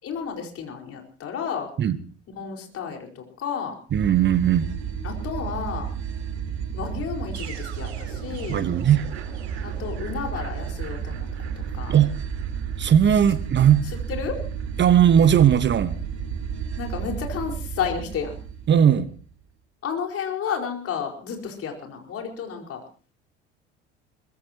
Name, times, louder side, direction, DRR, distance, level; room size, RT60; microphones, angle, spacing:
voice 1, 0.0-1.7 2.3-3.7 5.0-5.9 6.7-8.6 9.6-11.3 11.7-12.0 14.1-14.4 16.8-18.4 19.8-22.8, left 7 dB, 45° left, 2 dB, 5.0 m, -31 dB
voice 2, 3.9-4.7 8.5-9.1 11.9-12.1 12.8-13.9 14.8-15.9 18.7-19.1, right 9 dB, 35° right, 14 dB, 1.2 m, -18 dB
sound 1, 3.9-19.3, right 7 dB, 70° right, 4.0 m, -32 dB
23.5 x 20.0 x 3.0 m, 0.39 s
figure-of-eight pair, 60°, 33 cm